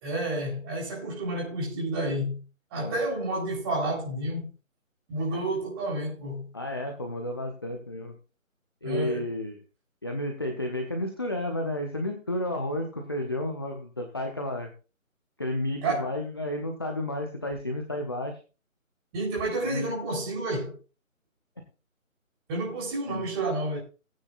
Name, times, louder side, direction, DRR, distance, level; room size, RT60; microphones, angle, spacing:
voice 1, 0.0-2.4 2.7-4.5 5.1-6.5 8.8-9.2 15.8-16.1 19.1-20.8 22.5-23.8, right 2 dB, 20° right, 3.7 m, -30 dB
voice 2, 6.5-8.2 8.8-9.6 10.0-14.7 15.4-18.4 19.6-19.9 23.1-23.3, left 1 dB, 20° left, 0.6 m, -32 dB
18.5 x 9.2 x 2.4 m
figure-of-eight pair, 155°, 41 cm